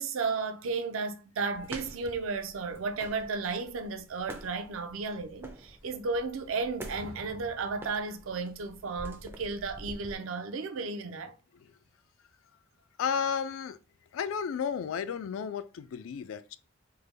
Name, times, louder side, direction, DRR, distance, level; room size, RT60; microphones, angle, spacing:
voice 1, 0.0-11.3, right 4 dB, 75° right, 0.5 m, -34 dB
sound 1, 1.5-10.2, right 1 dB, 10° right, 0.3 m, -47 dB
voice 2, 13.0-13.8 14.1-16.6, left 7 dB, 70° left, 0.3 m, -33 dB
3.3 x 2.1 x 3.3 m
head